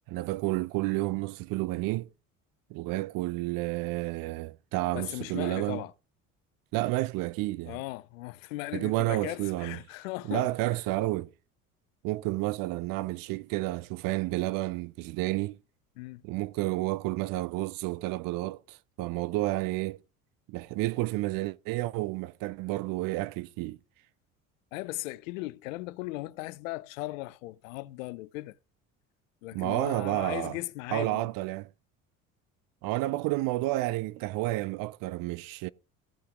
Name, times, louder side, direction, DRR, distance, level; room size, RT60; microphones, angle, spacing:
voice 1, 0.1-2.1 2.7-5.8 6.7-7.8 8.7-9.8 10.3-11.3 12.0-15.6 16.2-20.0 20.5-23.8 29.5-30.6 30.9-31.7 32.8-35.7, right 19 dB, 60° right, 0.6 m, -30 dB
voice 2, 4.9-5.9 7.7-10.5 16.0-16.2 24.7-28.6 29.4-31.3, left 19 dB, 75° left, 0.7 m, -37 dB
15.0 x 5.6 x 6.2 m
hypercardioid pair, 60°, 40 cm